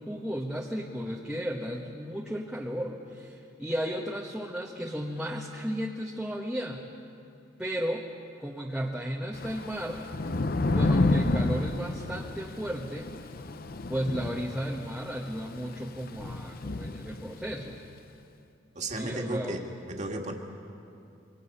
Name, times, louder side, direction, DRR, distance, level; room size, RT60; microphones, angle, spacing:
voice 1, 0.0-6.8 7.6-8.1 8.4-10.1 10.7-13.1 13.9-17.8 18.9-19.6, equal, 5° right, -2 dB, 1.2 m, -34 dB
Thunder / Rain, 9.3-17.7, left 2 dB, 50° left, 0.7 m, -30 dB
voice 2, 18.8-20.3, right 1 dB, 40° right, 1 dB, 2.1 m, -34 dB
27.5 x 23.5 x 5.6 m, 2.6 s
head